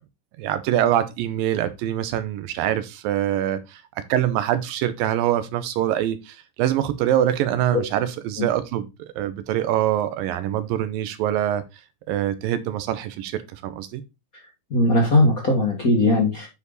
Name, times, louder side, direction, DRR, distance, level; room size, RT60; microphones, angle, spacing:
voice 1, 0.4-8.9 9.2-11.6 12.1-14.0, right 11 dB, 75° right, 2.3 m, -24 dB
voice 2, 14.7-16.5, left 2 dB, 40° left, 1.2 m, -19 dB
9.7 x 5.0 x 4.0 m
omnidirectional pair, 4.6 m